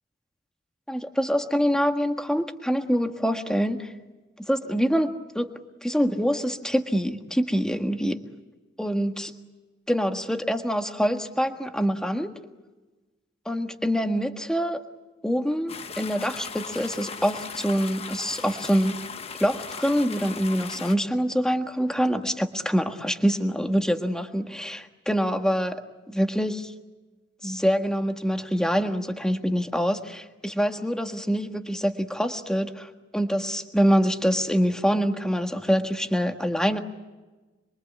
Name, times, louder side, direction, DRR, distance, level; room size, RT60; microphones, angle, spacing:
voice 1, 0.9-3.9 4.5-5.5 5.8-8.2 8.8-9.3 9.9-12.3 13.4-14.8 15.2-19.0 19.4-25.8 26.1-26.7 27.4-36.8, equal, 5° left, 5 dB, 1.6 m, -25 dB
sound 1, 15.7-21.0, left 6 dB, 35° left, 1.0 m, -38 dB
27.0 x 23.5 x 8.4 m, 1.2 s
head